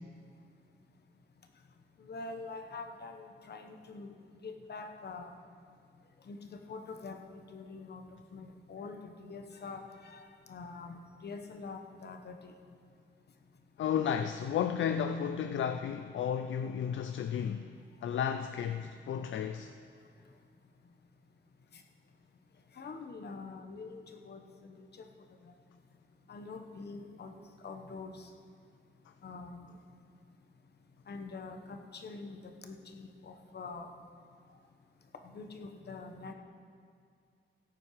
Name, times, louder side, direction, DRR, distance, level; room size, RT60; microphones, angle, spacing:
voice 1, 2.0-4.1 4.4-5.3 6.3-8.0 8.3-12.5 22.8-24.9 25.4-25.5 26.3-27.3 27.6-28.3 29.2-29.8 31.1-33.9 35.2-36.3, left 4 dB, 55° left, 1.1 m, -45 dB
voice 2, 13.8-17.7 18.0-19.7, left 8 dB, 70° left, 0.4 m, -33 dB
16.5 x 8.7 x 4.9 m
wide cardioid pair, 125°, 20 cm